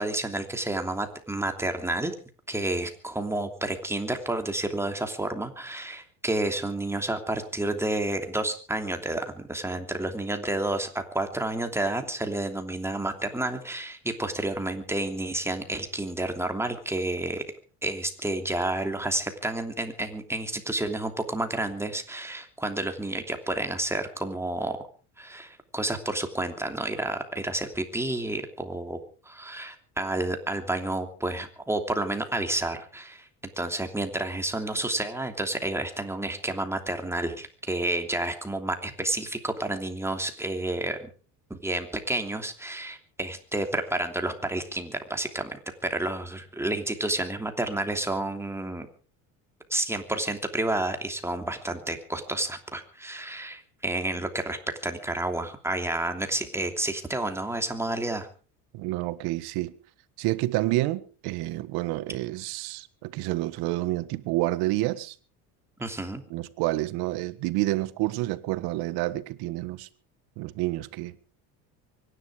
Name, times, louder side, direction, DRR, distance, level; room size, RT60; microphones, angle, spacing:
voice 1, 0.0-2.1 2.5-17.4 17.8-24.8 25.2-29.0 29.2-33.3 33.6-41.1 41.5-48.9 49.7-58.3 65.8-66.2, right 2 dB, 5° right, 3.0 m, -30 dB
voice 2, 58.7-59.7 60.2-65.1 66.3-69.9 70.4-71.1, right 18 dB, 70° right, 1.6 m, -29 dB
24.0 x 11.0 x 5.0 m
supercardioid pair, 115°, 40 cm